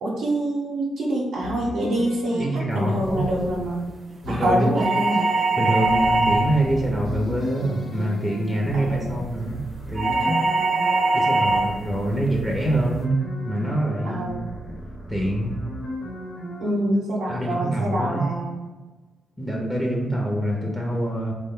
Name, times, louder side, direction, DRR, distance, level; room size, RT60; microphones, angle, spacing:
voice 1, 0.0-3.9 4.3-5.3 8.7-9.2 14.0-14.5 16.6-18.6, right 1 dB, 85° right, -5 dB, 0.6 m, -25 dB
sound 1, 1.4-16.7, right 1 dB, 70° left, 1.0 m, -36 dB
voice 2, 2.4-3.2 4.2-4.7 5.6-10.4 11.1-13.2 13.4-14.3 15.1-15.6 17.3-18.2 19.4-21.3, right 1 dB, ahead, -1 dB, 0.6 m, -25 dB
sound 2, 4.8-6.7 10.0-11.8, right 2 dB, 45° right, 0.6 m, -21 dB
3.6 x 2.2 x 3.6 m, 1.2 s
cardioid pair, 70°, 0 cm